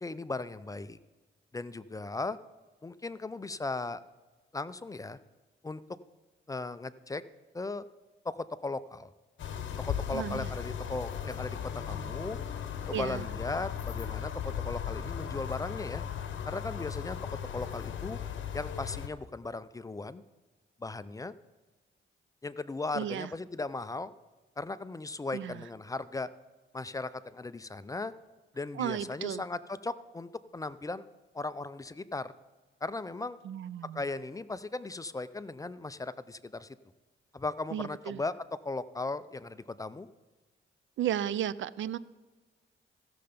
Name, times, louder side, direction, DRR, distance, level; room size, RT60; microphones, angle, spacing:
voice 1, 0.0-1.0 1.5-2.4 2.8-4.0 4.5-5.2 5.6-5.8 6.5-7.2 7.5-7.9 8.2-9.1 9.8-12.4 12.9-16.0 16.5-17.2 17.4-18.2 18.5-20.2 20.8-21.3 22.4-24.1 24.6-26.3 26.7-28.1 28.5-31.1 31.3-32.3 32.8-33.4 33.9-36.8 37.3-38.3 38.6-40.1, left 3 dB, 15° left, 14 dB, 0.4 m, -37 dB
sound 1, 9.4-19.1, left 8 dB, 65° left, 0.9 m, -37 dB
voice 2, 10.1-10.5 12.9-13.3 22.9-23.3 25.3-25.6 28.7-29.4 33.4-34.0 37.7-38.2 41.0-42.0, right 10 dB, 70° right, 18 dB, 0.4 m, -34 dB
15.5 x 6.7 x 5.1 m, 1.3 s
cardioid pair, 105°, 21 cm